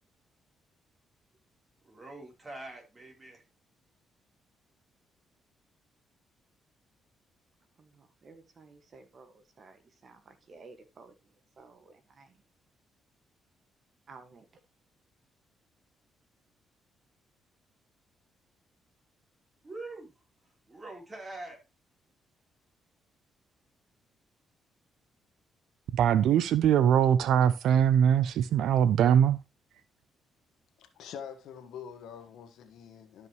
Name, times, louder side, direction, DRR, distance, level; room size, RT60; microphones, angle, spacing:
voice 1, 1.8-3.4 19.6-20.1 20.7-21.6, right 2 dB, 25° right, 3.6 m, -44 dB
voice 2, 7.8-11.1 11.6-12.4 14.1-14.5, right 4 dB, 45° right, 1.6 m, -54 dB
voice 3, 25.9-29.4, right 9 dB, 80° right, 0.5 m, -22 dB
voice 4, 30.8-33.3, left 8 dB, 80° left, 1.5 m, -45 dB
12.5 x 5.5 x 3.0 m
cardioid pair, 90°, 0 cm